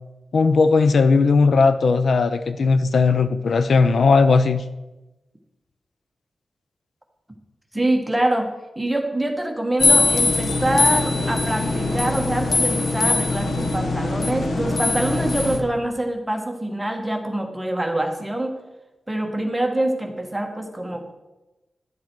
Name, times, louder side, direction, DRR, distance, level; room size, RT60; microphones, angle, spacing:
voice 1, 0.3-4.6, left 4 dB, 65° left, 11 dB, 0.5 m, -17 dB
voice 2, 7.7-18.5 19.1-21.1, right 1 dB, 5° right, 3 dB, 1.2 m, -25 dB
sound 1, 9.8-15.6, left 3 dB, 85° left, 1.4 m, -21 dB
10.5 x 7.3 x 4.6 m, 1.0 s
wide cardioid pair, 165°, 0 cm